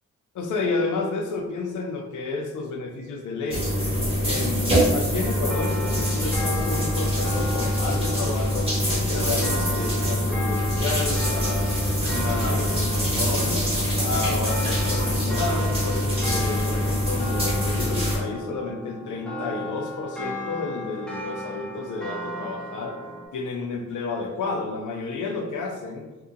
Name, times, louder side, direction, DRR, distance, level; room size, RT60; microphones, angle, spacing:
voice 1, 0.3-3.7 4.2-11.7 12.1-13.6 14.0-23.0 23.3-26.1, left 3 dB, 85° left, 3 dB, 0.5 m, -31 dB
sound 1, 3.5-18.2, equal, 20° right, 0.9 m, -24 dB
sound 2, 5.2-23.3, equal, 5° left, 0.4 m, -36 dB
2.7 x 2.4 x 2.5 m, 1.2 s
wide cardioid pair, 150°, 30 cm